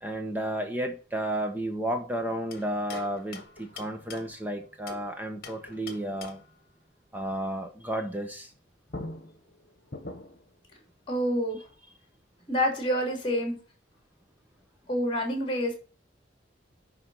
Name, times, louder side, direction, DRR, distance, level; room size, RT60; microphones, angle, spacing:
voice 1, 0.0-6.4 7.1-8.5, right 1 dB, 10° right, 1.0 m, -32 dB
sound 1, 2.5-5.1 5.4-6.6 8.5-8.6 8.9-10.5, left 3 dB, 50° left, 1.5 m, -43 dB
voice 2, 11.1-11.6 12.5-13.6 14.9-15.7, equal, 30° left, 3.0 m, -27 dB
10.5 x 4.0 x 5.5 m
head